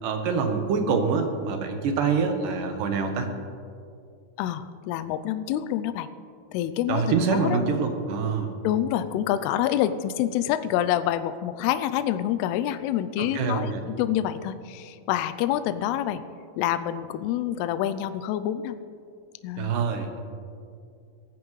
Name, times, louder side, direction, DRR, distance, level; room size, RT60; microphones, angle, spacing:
voice 1, 0.0-3.3 6.9-8.5 13.2-13.8 19.6-20.2, right 5 dB, 70° right, 5 dB, 2.4 m, -25 dB
voice 2, 4.4-6.1 6.5-7.6 8.6-16.2 16.6-18.8 19.4-19.8, left 11 dB, 85° left, 11 dB, 2.5 m, -27 dB
19.5 x 15.0 x 3.2 m, 2.3 s
omnidirectional pair, 4.8 m